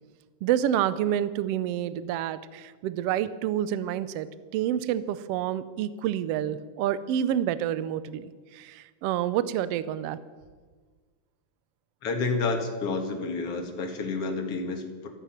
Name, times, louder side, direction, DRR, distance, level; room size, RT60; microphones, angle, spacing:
voice 1, 0.4-4.3 4.5-10.2, right 11 dB, 75° right, 15 dB, 1.4 m, -28 dB
voice 2, 12.0-15.1, left 3 dB, 55° left, 4 dB, 2.6 m, -30 dB
14.0 x 14.0 x 5.9 m, 1.4 s
omnidirectional pair, 3.5 m